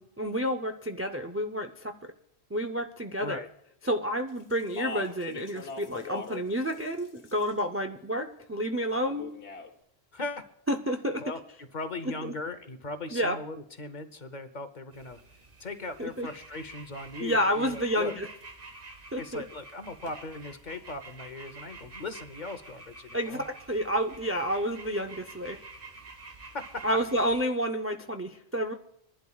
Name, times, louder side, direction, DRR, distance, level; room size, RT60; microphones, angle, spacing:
voice 1, 0.0-1.9 2.5-3.4 3.8-9.3 10.7-11.2 12.2-12.3 13.1-13.4 16.0-16.3 17.2-18.3 19.1-19.4 23.1-25.6 26.8-28.7, equal, 20° right, 5 dB, 0.4 m, -30 dB
Speech, 4.5-6.4 6.7-7.6 9.0-9.7, left 4 dB, 80° left, 1.4 m, -40 dB
voice 2, 10.1-10.5 11.2-15.2 15.6-18.1 19.1-23.4 26.5-26.8, left 3 dB, 45° left, 9 dB, 0.9 m, -39 dB
sound 1, 14.9-27.4, right 3 dB, 55° right, 1.6 m, -49 dB
25.0 x 11.5 x 2.3 m, 0.75 s
omnidirectional pair, 1.1 m